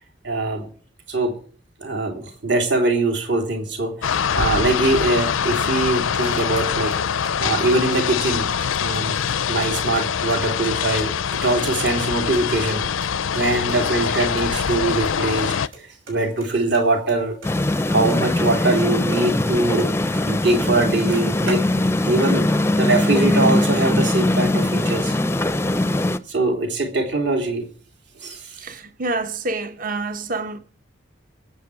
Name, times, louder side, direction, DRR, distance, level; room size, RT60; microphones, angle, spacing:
voice 1, 0.2-0.7 1.1-1.4 1.8-8.5 8.8-9.2 9.5-12.9 13.3-17.4 17.9-20.0 20.2-25.1 26.3-27.7 28.2-28.6, right 2 dB, 60° right, 3.3 m, -22 dB
sound 1, 4.0-15.7, left 7 dB, 90° left, 0.5 m, -24 dB
sound 2, 5.9-7.3 7.6-8.7 8.9-9.0 9.3-10.7 11.0-11.7 12.0-13.4 13.7-13.8 14.0-14.1 14.4-14.5 14.7-15.1 15.4-15.8 16.1-18.5 18.8-20.2 20.5-20.6 20.8-22.0, right 2 dB, 90° right, 6.2 m, -40 dB
sound 3, 17.4-26.2, left 1 dB, 15° left, 0.5 m, -21 dB
voice 2, 28.6-30.6, right 3 dB, 45° right, 1.0 m, -27 dB
22.5 x 8.3 x 4.9 m
head